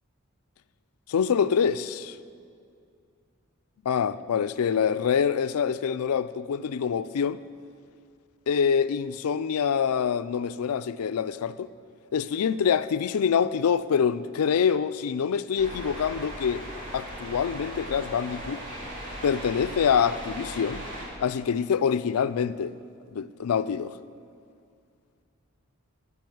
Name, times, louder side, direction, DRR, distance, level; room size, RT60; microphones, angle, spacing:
voice 1, 1.1-2.2 3.9-7.4 8.5-11.7 12.1-16.6 16.9-18.6 19.2-20.8 21.2-22.7 23.1-23.9, left 7 dB, 85° left, 0.4 m, -25 dB
sound 1, 15.6-21.1, equal, 35° right, 3.1 m, -38 dB
12.0 x 5.7 x 9.2 m
head